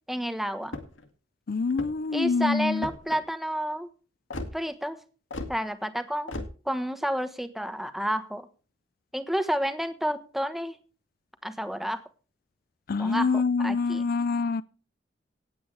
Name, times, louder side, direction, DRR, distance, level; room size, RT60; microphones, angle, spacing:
voice 1, 0.1-0.8 2.1-3.9 4.5-5.0 5.5-6.3 6.6-8.5 9.1-10.8 11.4-12.0 13.0-14.1, equal, ahead, 1.1 m, -30 dB
sound 1, 0.6-1.1 1.7-2.1 2.8-3.2 4.3-4.5 5.3-5.5 6.3-6.5, left 2 dB, 90° left, 2.2 m, -36 dB
voice 2, 1.5-2.9 12.9-14.6, left 4 dB, 50° left, 0.4 m, -26 dB
18.0 x 8.7 x 3.3 m
head